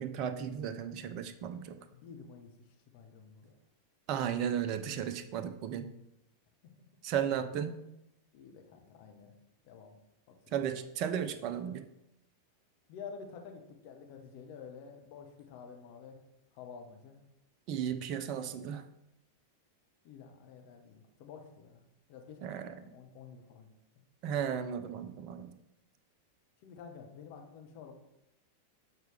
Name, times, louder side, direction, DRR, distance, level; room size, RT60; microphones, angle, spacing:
voice 1, 0.0-1.8 4.1-5.9 7.0-7.8 10.5-11.8 17.7-18.8 22.4-22.8 24.2-25.6, right 8 dB, 40° right, 10 dB, 0.5 m, -35 dB
voice 2, 1.9-2.5 2.9-3.5 7.6-7.7 8.3-9.3 9.6-10.0 10.3-10.6 11.6-11.7 12.9-16.2 16.5-17.2 20.0-21.8 22.1-23.7 26.6-27.9, left 6 dB, 45° left, 4 dB, 1.0 m, -50 dB
7.9 x 4.6 x 3.3 m, 0.87 s
figure-of-eight pair, 90°, 0 cm